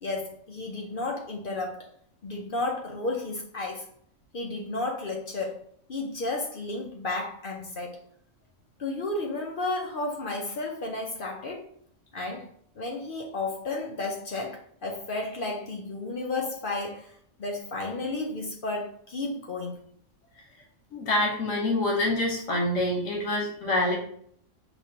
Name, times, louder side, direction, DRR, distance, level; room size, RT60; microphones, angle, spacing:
voice 1, 0.0-1.9 2.2-3.9 4.3-5.6 5.9-8.0 8.8-11.7 12.1-12.5 12.8-17.1 17.4-19.8, left 2 dB, 55° left, 1 dB, 0.7 m, -32 dB
voice 2, 20.9-23.9, left 1 dB, 90° left, -1 dB, 1.6 m, -26 dB
6.0 x 2.9 x 2.8 m, 0.62 s
omnidirectional pair, 1.3 m